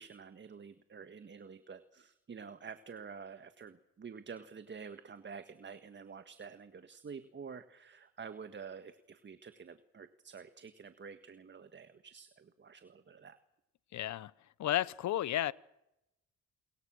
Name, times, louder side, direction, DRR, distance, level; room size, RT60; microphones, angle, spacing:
voice 1, 0.0-13.4, right 6 dB, 35° right, 1.6 m, -49 dB
voice 2, 13.9-14.3 14.6-15.5, left 13 dB, 70° left, 1.0 m, -32 dB
28.0 x 22.0 x 6.4 m
cardioid pair, 90°, 30 cm